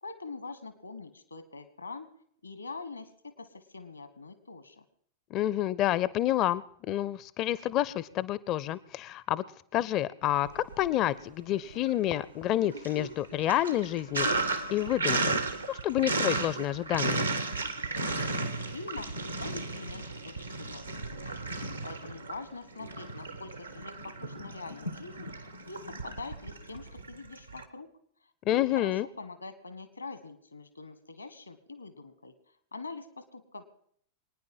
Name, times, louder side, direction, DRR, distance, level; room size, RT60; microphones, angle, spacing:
voice 1, 0.0-2.1 2.4-4.8 18.5-27.9 28.5-32.3 32.7-33.6, left 3 dB, 80° left, 12 dB, 1.5 m, -44 dB
voice 2, 5.3-9.4 9.7-14.3 14.7-15.3 15.7-17.2 28.5-29.1, left 13 dB, 35° left, 19 dB, 0.5 m, -29 dB
Sink (filling or washing), 10.3-11.2 11.5-27.6, right 3 dB, 85° right, 1.3 m, -34 dB
24.0 x 9.8 x 5.5 m, 0.65 s
figure-of-eight pair, 90°, 0 cm